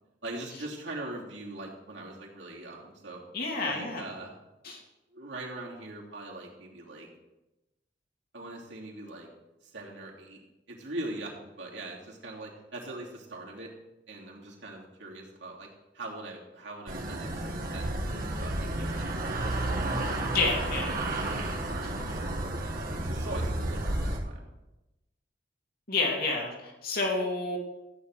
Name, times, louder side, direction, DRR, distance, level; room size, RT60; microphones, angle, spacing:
voice 1, 0.2-3.2 3.6-4.3 4.6-4.7 5.1-7.1 8.3-9.3 9.6-10.4 10.7-13.7 14.1-15.7 15.9-17.9 18.3-19.5 21.5-22.3 22.6-24.5, right 2 dB, 70° right, -3 dB, 3.1 m, -41 dB
voice 2, 3.3-4.0 4.6-4.8 20.3-20.9 25.9-27.6, left 3 dB, 55° left, 0 dB, 2.8 m, -29 dB
sound 1, 16.9-24.2, right 1 dB, 50° right, 2.0 m, -31 dB
14.0 x 9.9 x 4.9 m, 0.99 s
head